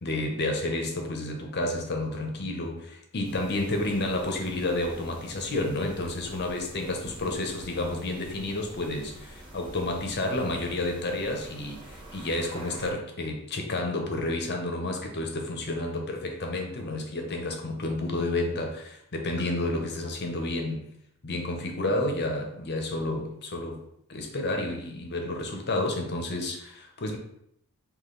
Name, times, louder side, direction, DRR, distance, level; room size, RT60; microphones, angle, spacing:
voice 1, 0.0-20.9 21.2-23.8 24.1-27.2, left 2 dB, 50° left, 3 dB, 0.8 m, -30 dB
sound 1, 3.2-12.9, right 1 dB, 20° right, 1.1 m, -47 dB
5.3 x 2.5 x 3.9 m, 0.73 s
head